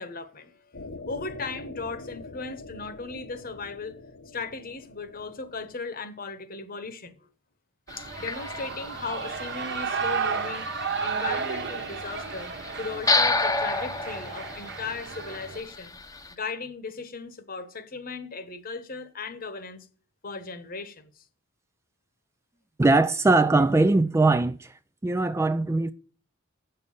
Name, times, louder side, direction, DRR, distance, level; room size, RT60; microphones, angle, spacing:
voice 1, 0.0-4.0 4.3-7.3 8.0-10.7 11.0-12.5 12.8-16.0 16.3-19.9 20.2-21.1, left 4 dB, 45° left, 1.1 m, -37 dB
sound 1, 0.7-5.8, left 2 dB, 70° left, 1.0 m, -44 dB
sound 2, 7.9-16.3, left 3 dB, 15° left, 0.8 m, -31 dB
Shout / Cheering, 7.9-15.6, right 5 dB, 55° right, 1.2 m, -33 dB
voice 2, 22.8-24.7 25.0-25.9, right 2 dB, 15° right, 0.3 m, -21 dB
8.0 x 6.7 x 5.5 m
head